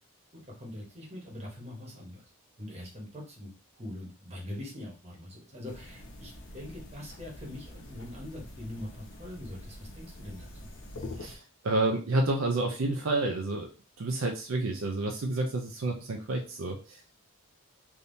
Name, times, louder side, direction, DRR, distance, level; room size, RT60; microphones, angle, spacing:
voice 1, 0.3-2.2 2.6-10.7, left 1 dB, 30° right, -2 dB, 1.0 m, -43 dB
sound 1, 5.7-11.4, left 1 dB, 55° left, 0.7 m, -45 dB
voice 2, 11.2-13.7 14.0-17.2, right 2 dB, 65° right, 2 dB, 0.5 m, -30 dB
3.4 x 2.7 x 2.6 m, 0.35 s
head